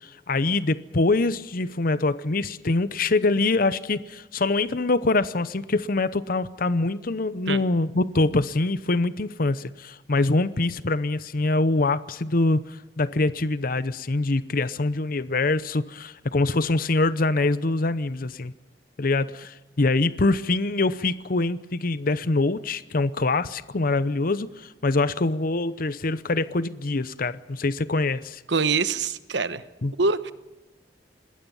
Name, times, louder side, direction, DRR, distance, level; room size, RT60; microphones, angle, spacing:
voice 1, 0.0-18.5 19.0-28.4 29.8-29.9, left 2 dB, 55° left, 0.8 m, -24 dB
voice 2, 28.5-29.6 30.0-30.3, right 4 dB, 85° right, 1.2 m, -24 dB
26.5 x 20.0 x 5.5 m
head